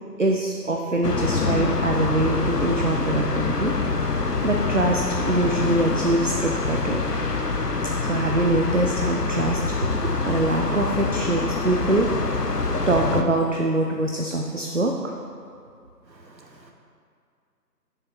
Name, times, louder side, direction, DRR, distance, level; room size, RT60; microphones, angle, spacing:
voice 1, 0.2-3.7 4.0-4.2 4.4-7.0 8.0-12.1 12.9-15.2, right 2 dB, 50° right, 1 dB, 0.6 m, -24 dB
sound 1, 1.0-13.2, left 3 dB, 65° left, 0.9 m, -25 dB
voice 2, 16.1-16.7, right 2 dB, 85° right, 1 dB, 1.5 m, -51 dB
9.9 x 7.1 x 3.9 m, 2.3 s
figure-of-eight pair, 165°, 50 cm